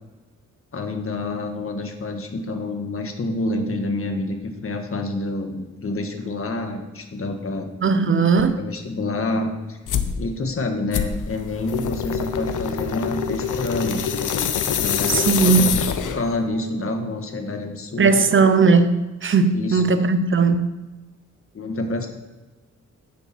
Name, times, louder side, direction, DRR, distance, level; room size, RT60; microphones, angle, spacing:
voice 1, 0.7-7.7 8.6-9.8 10.2-14.1 14.7-18.2 19.5-19.8 21.5-22.1, left 2 dB, 45° left, 1.7 m, -28 dB
voice 2, 7.8-8.6 15.1-15.7 18.0-20.7, right 4 dB, 40° right, 0.9 m, -18 dB
sound 1, 9.9-10.2 10.9-16.3, left 7 dB, 90° left, 0.9 m, -25 dB
10.5 x 9.5 x 4.5 m
wide cardioid pair, 115°, 30 cm